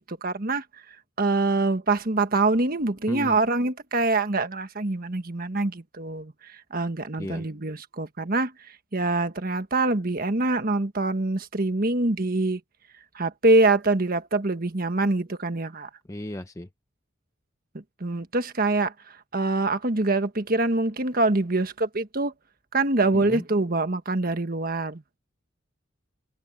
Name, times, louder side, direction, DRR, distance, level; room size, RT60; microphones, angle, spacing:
voice 1, 0.0-12.6 13.1-15.9 17.7-22.3 22.7-25.0, right 2 dB, 45° right, 1.5 m, -25 dB
voice 2, 16.1-16.7 23.1-23.4, left 1 dB, 15° left, 0.7 m, -34 dB
head